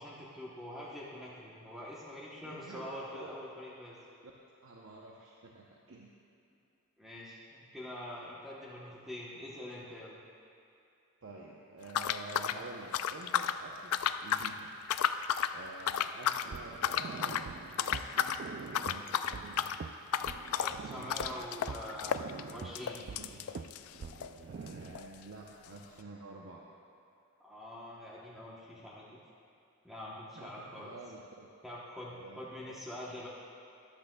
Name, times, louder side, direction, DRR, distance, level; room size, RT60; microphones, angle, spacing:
voice 1, 0.0-4.0 7.0-10.2 20.6-23.0 27.4-29.2 29.8-30.9 31.6-33.3, left 1 dB, ahead, -7 dB, 0.9 m, -45 dB
voice 2, 2.4-3.5 4.2-4.3 4.6-6.1 11.2-14.7 15.5-19.6 24.4-26.7 30.3-31.5 32.1-32.4, right 2 dB, 60° right, -3 dB, 0.7 m, -49 dB
sound 1, 11.9-13.6 13.9-14.5 14.8-15.6 15.9-16.5 16.8-17.5 17.8-18.4 18.7-24.4 24.7-24.8 24.9-25.1 25.7-25.8, left 9 dB, 80° left, 0.3 m, -33 dB
sound 2, 16.4-25.0, right 5 dB, 45° right, 0.3 m, -45 dB
13.5 x 11.5 x 2.3 m, 2.6 s
head